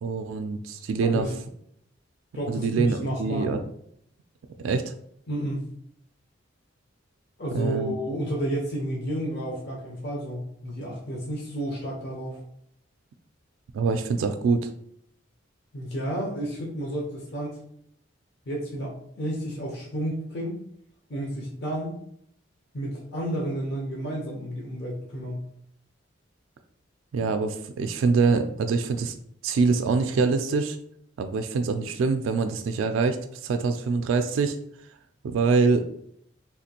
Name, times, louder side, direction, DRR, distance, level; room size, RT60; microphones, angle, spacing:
voice 1, 0.0-1.3 2.5-3.6 4.6-4.8 7.5-7.9 13.7-14.7 27.1-29.1 29.4-30.8 31.2-34.6 35.2-35.9, right 4 dB, 85° right, 6 dB, 0.3 m, -24 dB
voice 2, 1.0-1.3 2.3-3.5 5.3-5.6 7.4-12.4 15.7-17.6 18.5-20.6 21.1-21.9 22.7-25.4, right 1 dB, 60° left, -3 dB, 0.8 m, -31 dB
3.5 x 2.5 x 2.8 m, 0.68 s
head